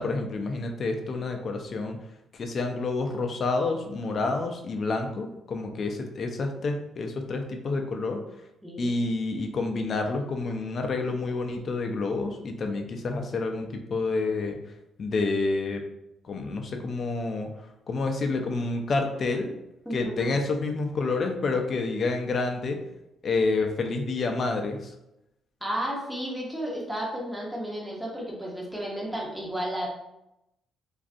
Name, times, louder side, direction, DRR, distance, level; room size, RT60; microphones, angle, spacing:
voice 1, 0.0-2.0 2.3-8.2 8.8-14.6 15.0-15.8 16.2-17.5 17.9-19.6 19.9-22.8 23.2-24.9, left 3 dB, 40° left, 4 dB, 0.3 m, -28 dB
voice 2, 8.6-9.0 19.9-20.4 25.6-29.9, equal, ahead, -4 dB, 0.6 m, -33 dB
2.5 x 2.3 x 2.4 m, 0.86 s
cardioid pair, 145°, 0 cm